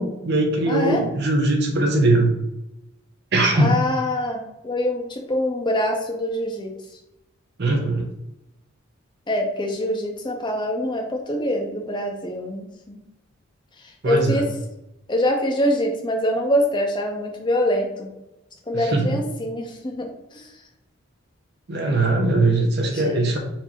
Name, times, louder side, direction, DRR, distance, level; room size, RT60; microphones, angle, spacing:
voice 1, 0.0-2.3 3.3-3.7 7.6-8.0 14.0-14.4 18.7-19.2 21.7-23.4, right 2 dB, 50° right, 2 dB, 0.9 m, -20 dB
voice 2, 0.7-1.0 3.6-6.7 9.3-13.0 14.0-14.4 15.1-18.1 18.7-20.5 22.9-23.1, left 1 dB, 20° left, 2 dB, 0.6 m, -24 dB
4.5 x 2.7 x 4.4 m, 0.89 s
head